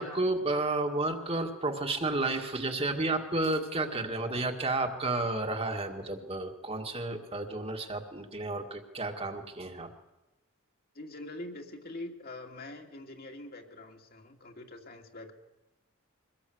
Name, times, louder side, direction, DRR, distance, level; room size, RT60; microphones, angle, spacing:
voice 1, 0.0-9.9, right 2 dB, 25° right, 4 dB, 2.0 m, -31 dB
voice 2, 10.9-15.3, left 2 dB, 45° left, 2 dB, 2.5 m, -44 dB
23.5 x 19.0 x 8.0 m, 1.0 s
head